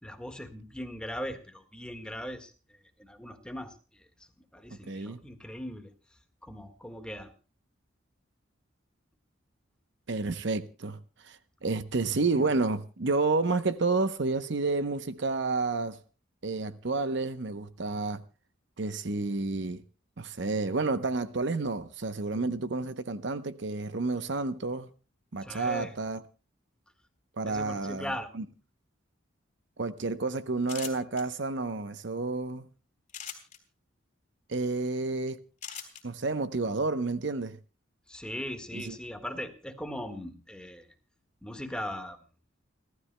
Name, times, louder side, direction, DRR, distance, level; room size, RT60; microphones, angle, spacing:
voice 1, 0.0-4.1 4.5-5.9 6.4-7.3 25.4-25.9 27.4-28.3 38.1-40.9 41.4-42.2, equal, 5° left, 1.6 m, -39 dB
voice 2, 4.7-5.2 10.1-11.0 11.2-16.0 16.4-18.2 18.8-19.8 20.2-24.9 25.3-26.2 27.4-28.4 29.8-32.7 34.5-35.4 36.0-37.6 38.7-38.9, right 3 dB, 60° right, 0.8 m, -30 dB
sound 1, 30.6-31.2 33.1-33.6 35.6-36.0, left 8 dB, 35° left, 3.7 m, -39 dB
29.5 x 13.0 x 2.2 m
head